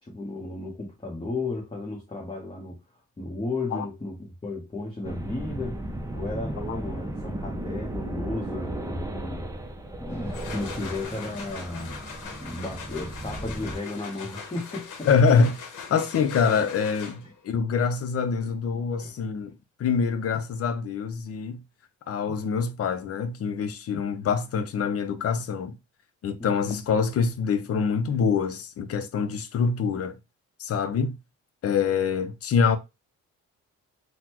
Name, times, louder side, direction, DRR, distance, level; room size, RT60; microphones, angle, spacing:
voice 1, 0.0-2.8 3.2-5.8 6.1-9.5 10.0-12.0 12.4-15.1 18.4-18.5 19.0-19.1 26.4-26.7, left 2 dB, 15° left, 1.0 m, -34 dB
sound 1, 5.0-13.8, right 1 dB, 10° right, 0.5 m, -35 dB
sound 2, 10.1-17.5, left 6 dB, 75° left, 0.8 m, -41 dB
voice 2, 15.1-15.6 15.9-19.5 19.8-21.6 22.1-25.8 26.2-30.2 30.6-31.2 31.6-32.8, left 5 dB, 50° left, 0.6 m, -25 dB
3.9 x 2.2 x 2.9 m
cardioid pair, 100°, 31 cm